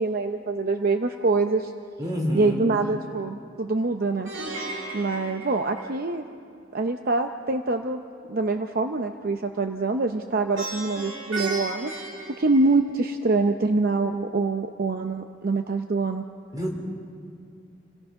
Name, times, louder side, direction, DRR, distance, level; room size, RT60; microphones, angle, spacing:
voice 1, 0.0-1.7 2.3-4.3 4.9-6.2 6.7-8.0 8.3-11.9 12.4-16.2, right 3 dB, 50° right, 6 dB, 0.7 m, -25 dB
voice 2, 2.0-2.6 16.5-16.8, equal, 20° right, 0 dB, 3.6 m, -28 dB
Plucked string instrument, 4.3-6.4 10.6-13.2, right 2 dB, 85° right, 2.5 m, -35 dB
28.0 x 18.0 x 5.8 m, 2.4 s
head